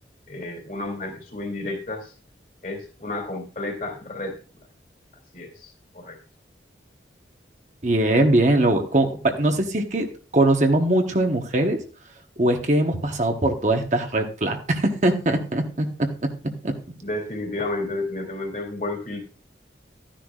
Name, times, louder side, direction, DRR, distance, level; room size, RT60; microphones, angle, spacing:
voice 1, 0.3-2.1 2.6-4.3 5.3-6.2 17.0-19.2, left 2 dB, 45° left, 3 dB, 2.7 m, -31 dB
voice 2, 7.8-10.1 10.3-11.8 12.4-16.3 16.6-16.7, right 1 dB, 40° right, 4 dB, 1.1 m, -21 dB
13.5 x 10.0 x 2.4 m, 0.37 s
head